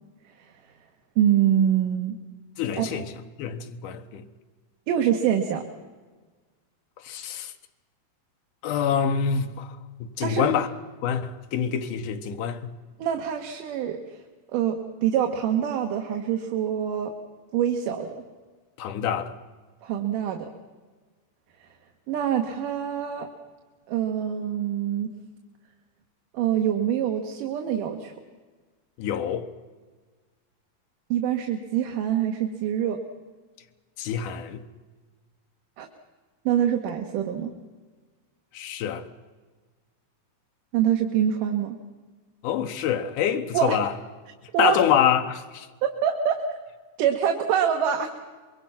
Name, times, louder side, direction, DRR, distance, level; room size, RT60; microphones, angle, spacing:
voice 1, 1.2-2.2 2.8-3.0 4.9-5.6 10.2-10.5 13.0-14.0 14.5-17.1 17.5-18.1 19.8-20.5 22.1-23.3 23.9-25.1 26.3-28.1 31.1-33.0 35.8-35.9 36.5-37.5 40.7-41.8 43.5-43.8 44.5-44.8 45.8-46.5 47.0-48.1, right 9 dB, 90° right, 2.9 m, -25 dB
voice 2, 2.6-3.1 3.4-4.3 7.0-7.5 8.6-9.8 10.2-10.7 11.0-12.7 18.8-19.4 29.0-29.5 34.0-34.6 38.5-39.0 42.4-43.9 44.6-45.7, left 8 dB, 80° left, 2.7 m, -26 dB
25.5 x 22.5 x 5.9 m
omnidirectional pair, 3.7 m